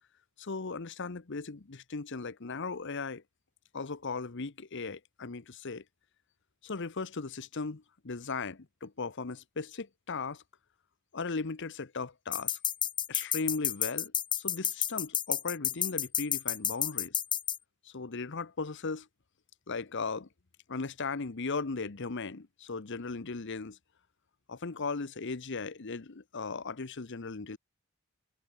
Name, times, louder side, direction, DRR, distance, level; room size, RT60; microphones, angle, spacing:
voice 1, 0.4-3.2 3.7-5.8 6.6-10.4 11.1-12.6 13.1-14.1 14.4-17.2 17.9-19.1 19.7-20.3 20.7-23.8 24.5-27.6, left 4 dB, 55° left, 0.9 m, -37 dB
sound 1, 12.3-17.6, left 9 dB, 20° left, 0.6 m, -30 dB
head